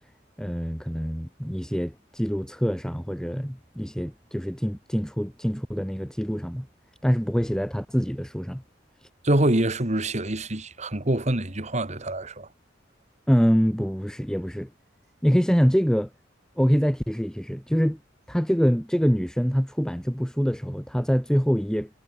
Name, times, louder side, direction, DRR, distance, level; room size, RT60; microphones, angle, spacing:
voice 1, 0.4-6.7 7.0-8.6 13.3-14.7 15.2-16.1 16.6-18.0 18.3-21.9, equal, 5° left, 3.4 m, -25 dB
voice 2, 9.2-12.5, right 1 dB, 40° right, 2.3 m, -25 dB
head